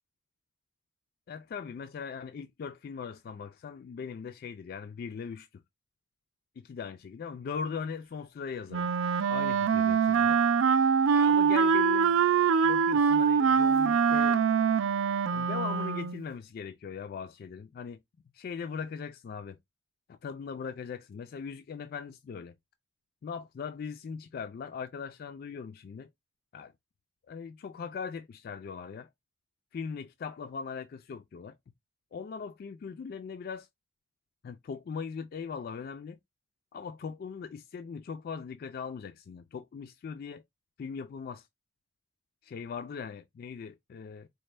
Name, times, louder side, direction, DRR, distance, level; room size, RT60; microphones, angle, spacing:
voice 1, 1.3-5.5 6.6-8.9 9.3-10.4 11.1-12.2 12.6-14.4 15.3-18.0 18.3-19.6 20.1-22.5 23.2-26.1 26.5-26.7 27.3-29.1 29.7-31.6 32.1-33.7 34.4-36.2 36.7-40.4 40.8-41.5 42.4-44.3, left 6 dB, 50° left, 0.3 m, -40 dB
Wind instrument woodwind instrument, 8.7-16.2, right 6 dB, 75° right, 0.4 m, -24 dB
4.1 x 2.1 x 3.2 m
head